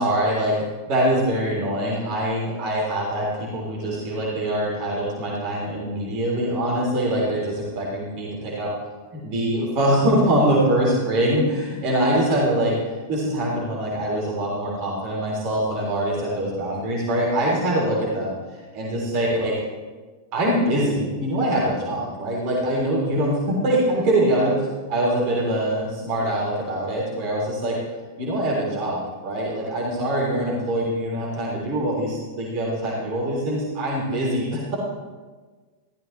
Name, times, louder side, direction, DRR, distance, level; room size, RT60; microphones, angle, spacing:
voice 1, 0.0-8.7 9.1-12.8 13.1-19.6 20.3-24.6 24.9-27.8 28.2-34.7, right 1 dB, 40° right, -4 dB, 3.6 m, -23 dB
15.0 x 13.5 x 3.3 m, 1.4 s
figure-of-eight pair, 90°, 0 cm